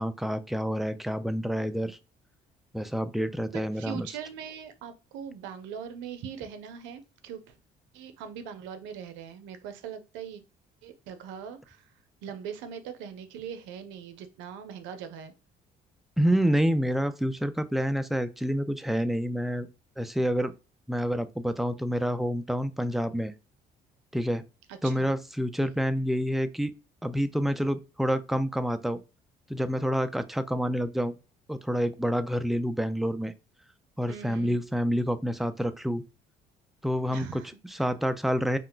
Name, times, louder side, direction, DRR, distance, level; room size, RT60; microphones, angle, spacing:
voice 1, 0.0-2.0 2.7-4.1 16.2-19.7 20.0-20.5 20.9-23.3 24.1-24.4 24.8-26.7 27.0-29.0 29.5-31.1 31.5-33.3 34.0-36.0 36.8-37.4 37.7-38.6, equal, ahead, 0.3 m, -28 dB
voice 2, 3.8-7.6 7.9-10.4 10.8-11.8 12.2-15.3 24.7-25.1 34.1-34.6 37.1-37.8, right 8 dB, 80° right, 0.5 m, -41 dB
2.4 x 2.1 x 3.7 m
supercardioid pair, 70°, 19 cm